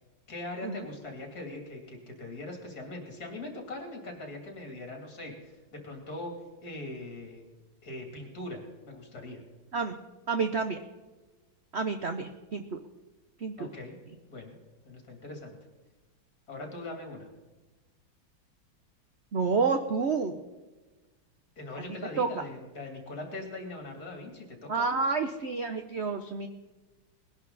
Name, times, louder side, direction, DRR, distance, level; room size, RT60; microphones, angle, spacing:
voice 1, 0.3-6.3 6.6-7.4 7.8-9.4 13.6-14.0 14.3-14.6 14.9-15.5 16.5-17.3 21.6-25.0, left 2 dB, 45° left, 2 dB, 3.4 m, -41 dB
voice 2, 10.3-10.8 11.7-12.8 13.4-13.7 19.3-20.4 22.2-22.4 24.7-26.5, right 4 dB, 60° right, 7 dB, 0.6 m, -29 dB
20.5 x 11.0 x 4.0 m, 1.2 s
omnidirectional pair, 2.2 m